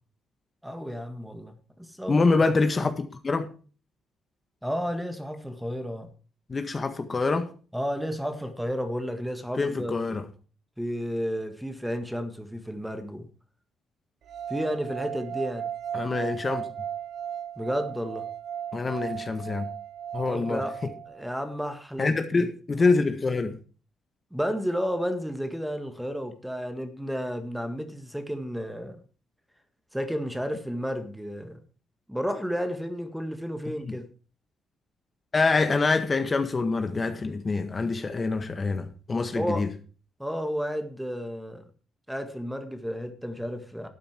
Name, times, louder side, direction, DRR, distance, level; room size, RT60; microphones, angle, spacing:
voice 1, 0.6-2.2 4.6-6.1 7.7-10.0 10.8-13.3 14.5-15.7 17.6-18.2 20.3-20.7 21.1-22.5 24.3-29.0 29.9-31.6 32.1-34.1 39.4-39.7 40.2-41.6 42.1-43.9, equal, 5° right, 1.8 m, -32 dB
voice 2, 2.1-3.5 6.5-7.5 9.6-10.2 15.9-16.6 18.7-19.7 20.1-20.6 22.0-23.5 33.8-34.0 35.3-39.7, left 3 dB, 30° left, 1.6 m, -25 dB
sound 1, 14.3-21.4, right 9 dB, 70° right, 1.2 m, -36 dB
12.5 x 9.2 x 4.5 m
cardioid pair, 90°, 0 cm